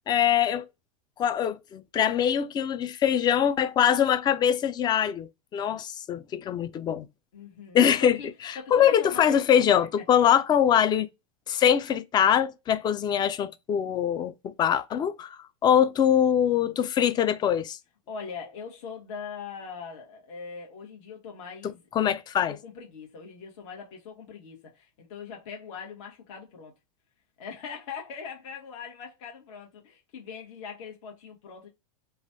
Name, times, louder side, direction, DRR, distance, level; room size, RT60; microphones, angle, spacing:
voice 1, 0.1-0.7 1.2-7.1 7.7-8.2 8.4-11.1 11.5-17.8 21.9-22.6, left 9 dB, 25° left, 0.4 m, -23 dB
voice 2, 7.3-8.3 8.5-9.4 18.1-22.2 22.5-26.7 27.4-31.7, left 6 dB, 55° left, 1.3 m, -41 dB
3.1 x 2.3 x 2.7 m
hypercardioid pair, 110°, 19 cm